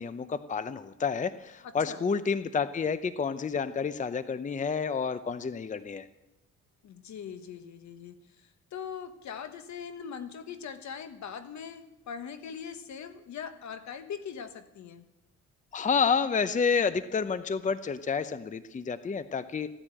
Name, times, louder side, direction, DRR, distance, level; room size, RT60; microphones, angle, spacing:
voice 1, 0.0-6.1 15.7-19.7, left 5 dB, 25° left, 13 dB, 0.7 m, -29 dB
voice 2, 1.6-2.0 6.8-15.1, left 7 dB, 65° left, 10 dB, 1.4 m, -41 dB
15.0 x 10.0 x 9.0 m, 0.97 s
cardioid pair, 90°, 30 cm